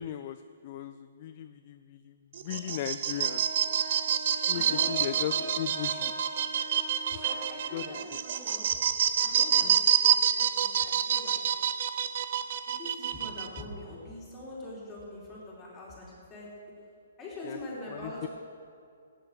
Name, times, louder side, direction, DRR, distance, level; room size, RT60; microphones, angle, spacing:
voice 1, 0.0-3.5 4.5-6.3 7.1-7.3 7.7-8.2 9.6-9.8 17.4-17.6 17.9-18.3, left 11 dB, 30° left, 11 dB, 0.3 m, -38 dB
sound 1, 2.3-13.6, right 9 dB, 40° right, 0.6 m, -28 dB
sound 2, 3.1-8.0, right 2 dB, 75° right, 2.7 m, -41 dB
voice 2, 4.5-5.5 7.2-8.7 9.2-9.7 10.0-11.4 12.3-12.4 12.7-16.5 17.2-18.3, left 1 dB, 10° left, -6 dB, 3.4 m, -43 dB
17.0 x 9.2 x 6.6 m, 2.3 s
hypercardioid pair, 175°, 0 cm